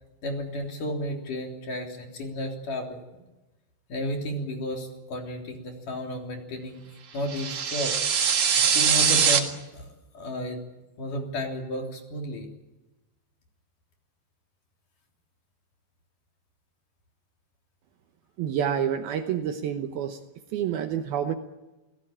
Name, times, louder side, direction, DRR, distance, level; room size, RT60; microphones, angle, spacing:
voice 1, 0.2-3.2 3.9-6.8 7.1-8.0 8.6-9.8 10.1-10.6 11.0-12.5, left 1 dB, 50° left, 2 dB, 4.7 m, -33 dB
sound 1, 7.3-9.4, right 7 dB, 50° right, 2.7 m, -22 dB
voice 2, 18.4-20.2 20.5-21.4, right 9 dB, 70° right, 7 dB, 2.6 m, -28 dB
28.5 x 17.0 x 8.9 m, 1.1 s
omnidirectional pair, 5.1 m